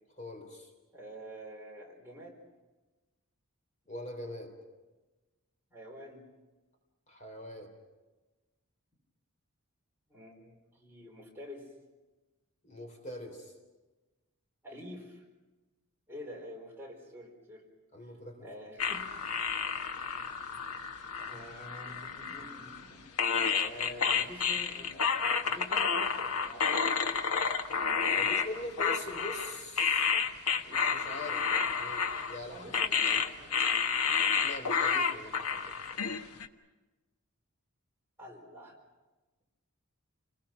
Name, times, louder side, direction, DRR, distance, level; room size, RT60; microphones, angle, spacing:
voice 1, 0.2-0.7 3.9-4.5 7.1-7.7 12.6-13.5 17.9-18.5 28.2-30.1 30.6-32.0 32.3-32.7 34.4-35.8, left 1 dB, 35° left, 4 dB, 3.6 m, -43 dB
voice 2, 0.9-2.4 5.7-6.3 10.1-11.7 14.6-15.2 16.1-17.6 18.0-18.1 18.4-19.1 21.2-23.0 23.6-25.1 25.4-26.8 32.5-33.6 38.2-38.8, equal, 10° right, -2 dB, 4.3 m, -47 dB
sound 1, 18.8-22.8 23.2-36.5, left 6 dB, 85° left, 1.3 m, -30 dB
29.0 x 20.0 x 5.9 m, 1.2 s
head